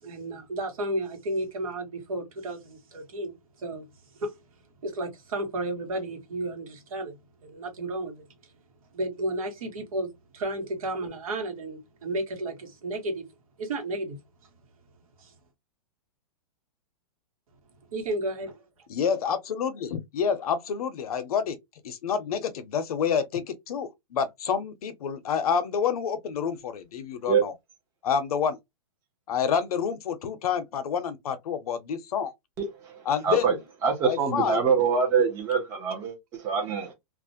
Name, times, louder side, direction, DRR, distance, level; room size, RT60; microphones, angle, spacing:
voice 1, 0.0-3.9 4.1-4.3 4.8-8.2 8.9-13.2 13.6-14.2 15.2-15.3 17.9-18.7, right 1 dB, 65° right, 1.2 m, -33 dB
voice 2, 18.9-21.6 21.8-27.5 28.0-28.6 29.3-32.3 33.0-33.5 34.0-34.7, left 7 dB, 75° left, 0.6 m, -28 dB
voice 3, 33.8-36.9, right 6 dB, 15° right, 0.5 m, -24 dB
2.4 x 2.1 x 2.6 m
hypercardioid pair, 170°, 19 cm